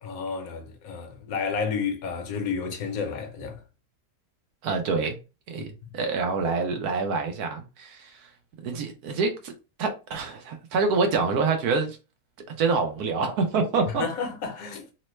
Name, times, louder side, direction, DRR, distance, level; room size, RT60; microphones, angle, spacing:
voice 1, 0.0-3.6 5.6-5.7 14.0-14.9, left 5 dB, 70° left, 1.1 m, -31 dB
voice 2, 4.6-5.2 5.5-8.3 8.6-9.5 9.8-12.0 12.6-14.1, right 4 dB, 75° right, 1.2 m, -26 dB
3.2 x 2.1 x 3.0 m
omnidirectional pair, 1.7 m